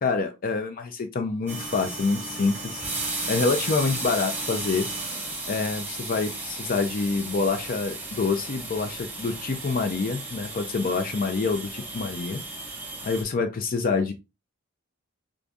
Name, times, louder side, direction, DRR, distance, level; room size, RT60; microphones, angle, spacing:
voice 1, 0.0-2.8 3.3-4.9 5.5-12.4 13.0-14.1, left 4 dB, 40° left, 6 dB, 0.4 m, -26 dB
sound 1, 1.5-13.2, right 2 dB, 10° right, 1.0 m, -34 dB
4.9 x 2.5 x 2.3 m, 0.26 s
head